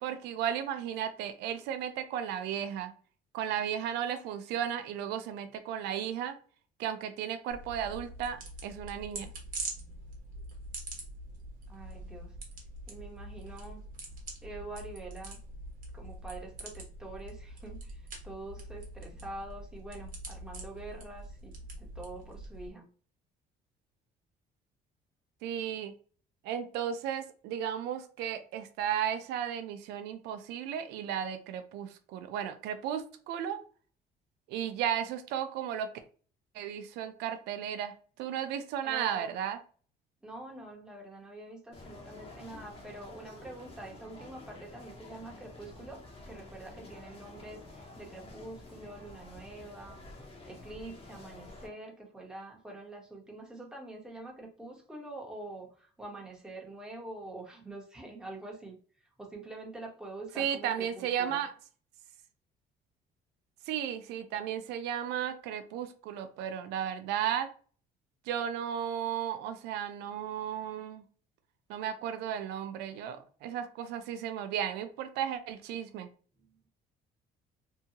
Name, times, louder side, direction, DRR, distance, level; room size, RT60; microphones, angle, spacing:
voice 1, 0.0-2.9 3.3-6.4 6.8-9.3 25.4-25.9 26.4-33.6 34.5-35.9 36.5-37.9 38.2-39.6 60.4-61.5 63.7-67.5 68.3-71.0 71.7-76.1, right 9 dB, 85° right, 9 dB, 0.4 m, -34 dB
sound 1, 7.5-22.7, right 2 dB, 55° right, 0.9 m, -44 dB
voice 2, 11.7-12.3 12.9-13.8 14.4-15.4 15.9-22.9 38.8-39.3 40.2-50.0 50.5-58.8 59.2-61.4 76.4-76.6, right 2 dB, 5° right, -1 dB, 0.9 m, -45 dB
sound 2, 41.7-51.7, left 2 dB, 35° left, 0.9 m, -49 dB
2.7 x 2.3 x 2.7 m, 0.41 s
cardioid pair, 110°, 17 cm